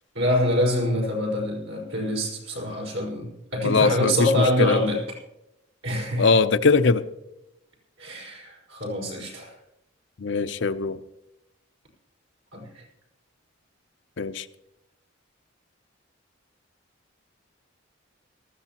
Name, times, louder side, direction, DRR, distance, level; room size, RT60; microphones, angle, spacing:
voice 1, 0.1-5.0 5.8-6.3 8.0-9.6 12.5-12.8, left 1 dB, 80° right, -1 dB, 4.9 m, -25 dB
voice 2, 3.6-4.3 4.6-4.8 6.2-7.1 10.2-11.0 14.2-14.4, left 4 dB, 60° left, 11 dB, 0.6 m, -21 dB
19.0 x 14.0 x 2.9 m, 0.86 s
head